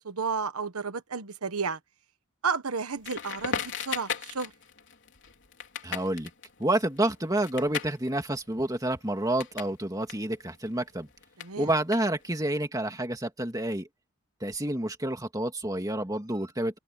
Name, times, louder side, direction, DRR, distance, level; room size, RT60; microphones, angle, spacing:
voice 1, 0.0-1.8 2.4-4.5 11.4-11.7, right 5 dB, 80° right, 1.2 m, -32 dB
Crackle, 3.0-9.8 10.0-12.5, left 7 dB, 55° left, 3.9 m, -38 dB
voice 2, 5.8-6.3 6.6-11.1 11.6-13.9 14.4-16.8, right 1 dB, 15° right, 2.3 m, -29 dB
head